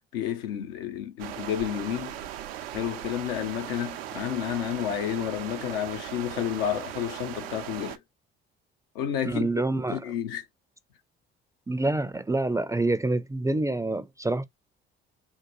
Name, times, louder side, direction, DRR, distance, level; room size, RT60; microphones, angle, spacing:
voice 1, 0.1-2.2 2.7-8.0 8.9-9.5 9.9-10.5, left 10 dB, 75° left, 0.7 m, -30 dB
sound 1, 1.2-8.0, right 11 dB, 80° right, 0.5 m, -38 dB
voice 2, 9.2-10.0 11.7-14.4, right 2 dB, 10° right, 0.4 m, -27 dB
3.8 x 2.2 x 3.0 m
hypercardioid pair, 50°, 29 cm